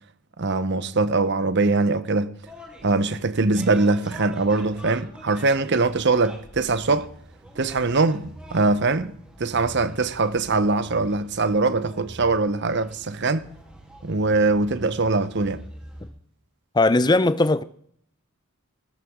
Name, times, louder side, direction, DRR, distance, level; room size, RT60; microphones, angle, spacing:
voice 1, 0.4-2.3 2.8-7.1 7.6-9.1 9.4-13.5 14.0-15.6, right 3 dB, 55° right, 0.9 m, -22 dB
sound 1, 2.4-16.1, right 1 dB, 5° right, 4.2 m, -45 dB
voice 2, 16.7-17.6, left 2 dB, 20° left, 0.5 m, -18 dB
15.5 x 14.0 x 3.7 m
head